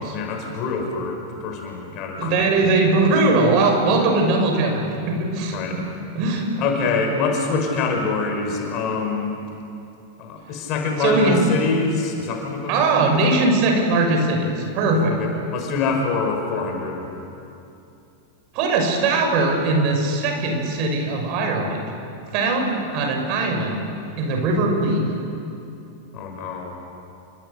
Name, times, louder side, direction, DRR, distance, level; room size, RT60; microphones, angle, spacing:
voice 1, 0.1-2.3 2.6-2.7 5.5-5.8 6.6-9.3 10.2-12.9 15.2-17.1 26.1-26.7, left 4 dB, 40° left, 2 dB, 6.2 m, -25 dB
voice 2, 2.2-5.8 6.1-6.5 11.0-11.4 12.7-15.1 18.5-21.8 22.3-23.8 24.2-25.1, right 2 dB, 40° right, 2 dB, 6.2 m, -20 dB
29.5 x 25.5 x 6.9 m, 2.7 s
figure-of-eight pair, 90°, 0 cm